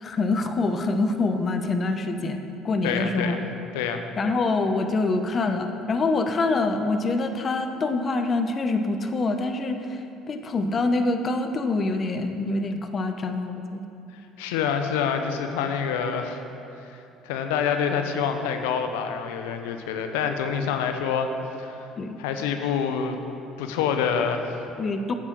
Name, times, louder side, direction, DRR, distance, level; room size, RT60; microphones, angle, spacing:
voice 1, 0.0-3.4 4.2-13.8 22.0-22.2 24.8-25.1, left 3 dB, 40° left, 7 dB, 0.9 m, -25 dB
voice 2, 2.8-3.4 3.7-4.0 14.4-16.4 16.9-21.3 21.6-21.9 22.2-23.2 23.6-24.7, left 7 dB, 80° left, 6 dB, 0.8 m, -27 dB
9.5 x 7.5 x 6.0 m, 2.8 s
hypercardioid pair, 70°, 0 cm